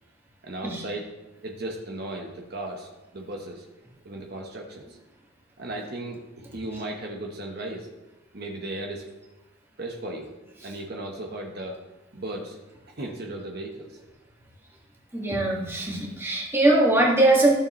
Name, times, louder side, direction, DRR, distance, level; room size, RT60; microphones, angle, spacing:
voice 1, 0.4-3.6 4.0-5.0 5.6-7.9 8.3-9.1 9.8-10.3 10.6-11.8 12.1-12.6 13.0-14.0, right 1 dB, 50° right, 0 dB, 1.1 m, -36 dB
voice 2, 15.1-17.5, right 2 dB, 10° right, -3 dB, 1.8 m, -21 dB
14.5 x 6.9 x 3.1 m, 1.1 s
head